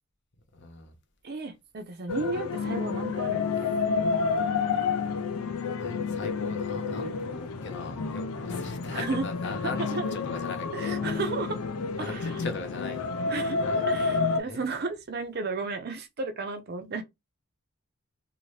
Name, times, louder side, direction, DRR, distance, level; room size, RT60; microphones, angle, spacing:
voice 1, 0.5-0.9 5.8-11.0 12.0-13.1 13.6-13.9 14.4-14.6, left 3 dB, 55° left, 0.8 m, -39 dB
voice 2, 1.2-3.7 8.5-9.3 9.9-10.1 10.7-11.6 12.0-12.5 13.2-13.6 13.9-17.0, right 3 dB, 45° right, 0.5 m, -34 dB
sound 1, 2.1-14.4, left 5 dB, 80° left, 0.5 m, -30 dB
sound 2, 6.8-15.2, left 1 dB, ahead, 0.6 m, -49 dB
2.7 x 2.6 x 3.2 m
head